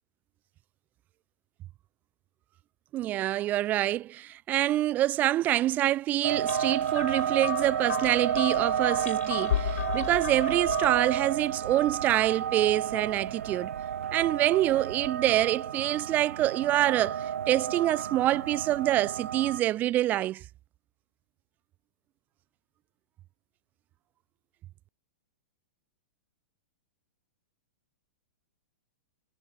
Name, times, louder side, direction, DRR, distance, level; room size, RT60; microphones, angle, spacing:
voice 1, 2.9-13.7 14.1-20.4, right 14 dB, 25° right, 0.6 m, -26 dB
sound 1, 6.2-19.6, right 9 dB, 85° right, 4.7 m, -31 dB
sound 2, 6.5-11.2, left 10 dB, 80° left, 1.6 m, -34 dB
hypercardioid pair, 155°, 7 cm